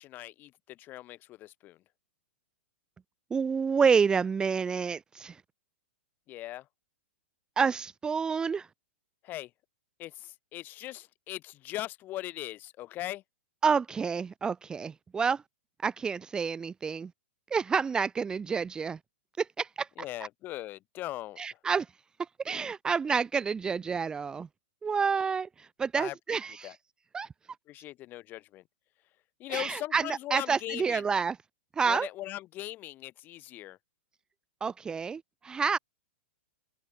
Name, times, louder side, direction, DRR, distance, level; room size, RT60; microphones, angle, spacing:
voice 1, 0.0-1.8 6.3-6.6 9.2-9.5 10.0-13.2 20.0-21.4 26.0-26.1 26.6-26.7 27.7-28.6 29.4-31.0 31.8-33.8, left 15 dB, 30° left, 2.3 m, -39 dB
voice 2, 3.3-5.4 7.6-8.7 13.6-15.4 15.8-17.1 17.5-19.0 19.4-19.9 21.4-21.9 22.2-24.5 24.8-26.8 27.1-27.3 29.5-31.4 31.8-32.1 34.6-35.8, right 5 dB, 10° right, 0.7 m, -29 dB
open air
hypercardioid pair, 145°, 7 cm